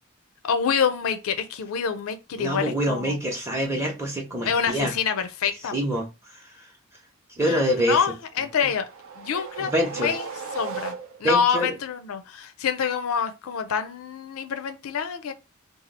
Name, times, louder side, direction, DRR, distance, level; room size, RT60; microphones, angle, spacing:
voice 1, 0.4-3.1 4.5-5.8 7.4-8.9 9.2-10.3 10.5-10.9 11.2-15.3, left 6 dB, 75° left, 0.5 m, -26 dB
voice 2, 2.4-4.9 5.7-6.5 7.4-8.0 9.6-10.1 11.2-11.7, equal, 15° right, 0.8 m, -26 dB
sound 1, 8.4-11.5, right 6 dB, 65° right, 0.6 m, -37 dB
2.8 x 2.4 x 4.0 m
head